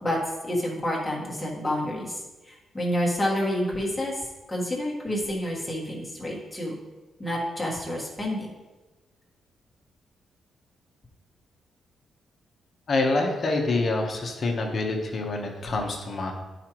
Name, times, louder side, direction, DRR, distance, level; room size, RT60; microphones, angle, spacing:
voice 1, 0.0-6.7 7.2-8.5, equal, 10° left, -4 dB, 1.5 m, -29 dB
voice 2, 12.9-16.3, left 2 dB, 35° left, 2 dB, 1.0 m, -26 dB
11.5 x 4.9 x 3.0 m, 1.2 s
wide cardioid pair, 165°, 0 cm